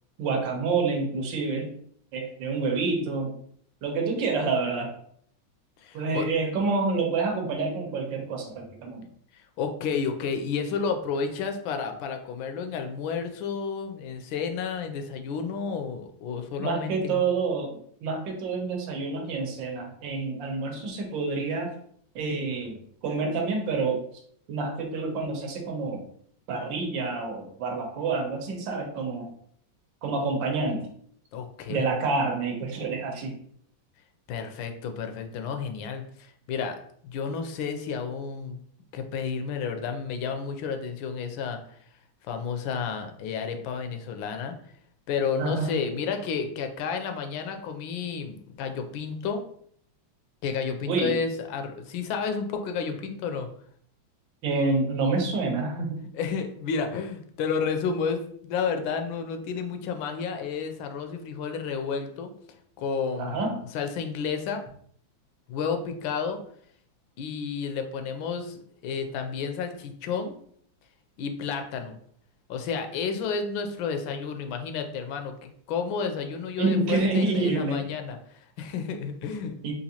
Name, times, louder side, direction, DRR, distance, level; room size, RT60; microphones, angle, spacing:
voice 1, 0.2-1.7 2.1-3.3 3.8-4.9 5.9-9.0 16.6-17.7 18.0-21.7 22.1-24.0 24.5-26.0 26.5-29.3 30.0-30.9 31.7-33.3 45.4-45.7 50.9-51.1 54.4-56.0 63.2-63.6 76.6-77.8 79.6-79.7, right 3 dB, 75° right, 2 dB, 1.5 m, -28 dB
voice 2, 5.8-6.3 9.3-17.2 31.3-31.9 34.3-36.8 37.0-38.6 38.9-41.6 42.2-44.6 45.1-49.4 50.4-53.5 56.1-62.3 62.8-64.6 65.5-66.4 67.2-70.3 71.2-72.0 72.5-79.5, left 6 dB, 80° left, 6 dB, 1.3 m, -31 dB
4.0 x 2.5 x 2.8 m, 0.63 s
omnidirectional pair, 2.1 m